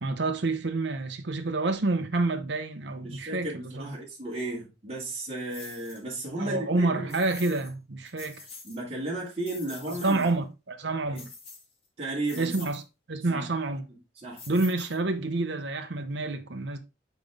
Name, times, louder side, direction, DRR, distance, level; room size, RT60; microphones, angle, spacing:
voice 1, 0.0-4.0 6.4-8.4 9.9-11.3 12.4-12.8 13.1-13.8 14.5-16.8, right 2 dB, 60° right, 0.8 m, -28 dB
voice 2, 3.0-7.1 8.6-10.3 11.1-11.2 12.0-12.5 13.3-13.4 14.2-14.4, right 2 dB, 30° right, 2.0 m, -34 dB
sound 1, 5.5-6.0 7.1-7.7 8.1-8.8 9.2-10.3 11.1-11.9 12.2-12.8 14.4-15.2, left 4 dB, 30° left, 1.5 m, -46 dB
5.9 x 5.1 x 3.4 m
head